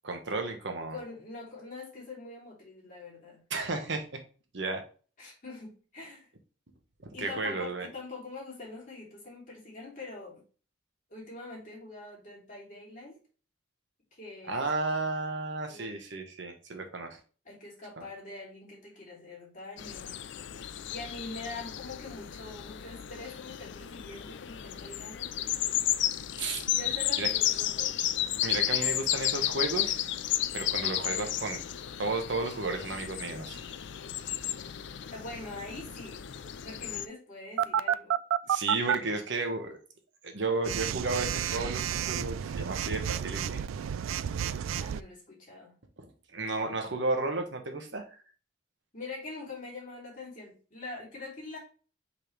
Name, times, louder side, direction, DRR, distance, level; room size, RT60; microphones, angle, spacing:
voice 1, 0.0-1.0 3.5-4.2 4.5-4.8 7.0-7.9 14.5-17.2 18.0-18.1 26.4-26.6 27.2-27.3 28.4-30.0 30.5-31.6 32.0-33.6 38.5-39.8 40.2-43.6 46.0-46.1 46.3-48.1, right 3 dB, 65° right, 4 dB, 1.2 m, -33 dB
voice 2, 0.9-3.4 5.2-6.3 7.1-10.4 11.1-13.2 14.1-14.7 15.7-16.0 17.4-20.2 20.9-25.7 26.7-28.0 35.1-36.2 36.6-38.2 44.8-45.7 48.9-51.6, left 3 dB, 40° left, -5 dB, 3.0 m, -44 dB
sound 1, 19.8-37.1, left 12 dB, 65° left, 0.4 m, -33 dB
Telephone, 37.6-38.9 40.6-45.0, right 9 dB, 90° right, 0.3 m, -30 dB
5.6 x 5.2 x 3.3 m, 0.37 s
head